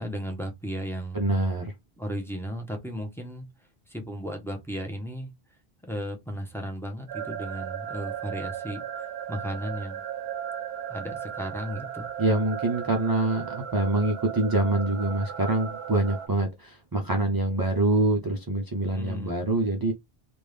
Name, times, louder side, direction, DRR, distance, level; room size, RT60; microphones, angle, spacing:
voice 1, 0.0-1.2 2.0-3.5 3.9-5.3 5.8-8.8 9.3-10.0 10.9-12.1 18.9-19.3, equal, 5° left, 0.9 m, -35 dB
voice 2, 1.1-1.7 12.2-19.9, right 1 dB, 25° right, 0.5 m, -25 dB
sound 1, 7.1-16.3, right 9 dB, 75° right, 0.8 m, -36 dB
3.6 x 2.5 x 3.2 m
omnidirectional pair, 1.1 m